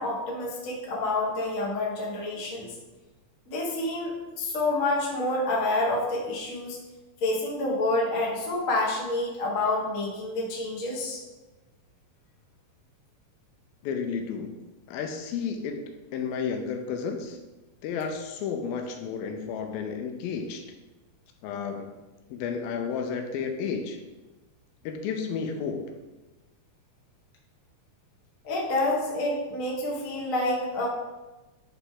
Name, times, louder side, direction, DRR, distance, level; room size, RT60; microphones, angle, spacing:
voice 1, 0.0-2.7 3.5-6.8 7.2-11.2 28.4-30.9, left 2 dB, 60° left, -4 dB, 0.8 m, -28 dB
voice 2, 13.8-14.6 14.9-17.4 17.8-20.7 21.4-21.9 22.3-24.0 24.8-25.9, left 6 dB, 80° left, 5 dB, 2.4 m, -32 dB
10.5 x 4.0 x 3.8 m, 1.1 s
omnidirectional pair, 4.4 m